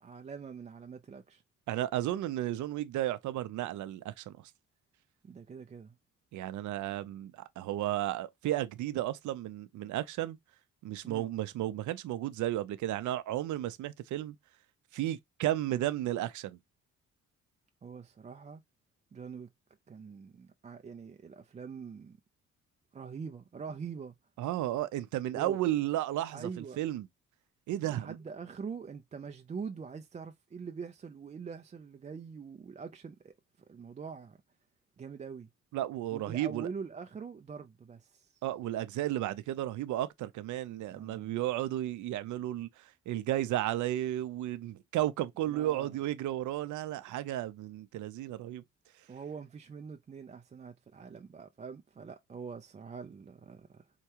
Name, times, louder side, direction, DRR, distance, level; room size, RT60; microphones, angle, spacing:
voice 1, 0.0-1.4 5.2-5.9 11.0-11.2 17.8-18.6 19.1-19.5 19.9-22.2 22.9-24.1 25.3-25.8 26.3-26.8 27.9-33.3 33.7-34.4 35.0-35.5 36.1-38.3 40.9-41.4 45.5-45.9 49.1-53.8, right 6 dB, 25° right, 0.4 m, -44 dB
voice 2, 1.7-4.5 6.3-10.4 10.8-14.4 14.9-16.6 24.4-27.1 27.7-28.2 35.7-36.7 38.4-48.6, right 13 dB, 75° right, 0.6 m, -33 dB
4.6 x 2.2 x 2.8 m
cardioid pair, 90°, 30 cm